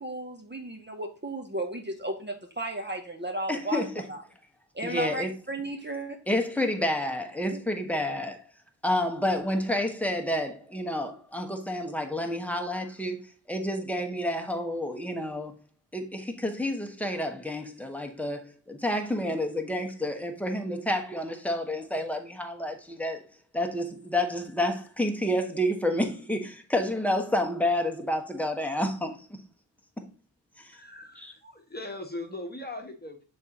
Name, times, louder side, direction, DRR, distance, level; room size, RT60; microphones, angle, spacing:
voice 1, 0.0-4.2 4.7-6.2 7.5-7.6, right 1 dB, 25° right, 0.9 m, -34 dB
voice 2, 3.5-4.0 4.8-5.3 6.3-8.4 8.8-13.2 13.5-15.5 15.9-23.2 23.5-29.4 30.0-30.1 30.6-30.8 31.2-31.3, left 1 dB, 5° left, 1.2 m, -29 dB
voice 3, 30.7-33.2, left 2 dB, 20° left, 1.3 m, -39 dB
6.5 x 4.3 x 3.7 m
wide cardioid pair, 70°, 43 cm